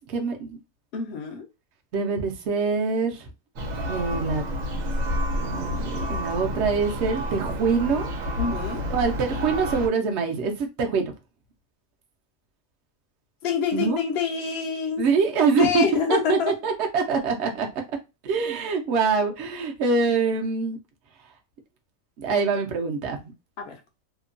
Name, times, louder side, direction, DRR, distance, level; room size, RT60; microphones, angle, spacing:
voice 1, 0.1-0.6 1.9-3.3 3.8-4.4 5.4-8.1 8.9-11.1 13.7-14.0 15.0-15.8 16.1-17.7 18.2-20.8 22.2-23.2, right 4 dB, 60° right, 0.9 m, -24 dB
voice 2, 0.9-1.5 8.4-8.8 13.4-15.0 15.6-16.5 23.6-23.8, left 6 dB, 55° left, 0.8 m, -26 dB
Church bell, 3.6-9.9, equal, 80° right, 1.1 m, -29 dB
2.9 x 2.2 x 2.5 m
omnidirectional pair, 1.4 m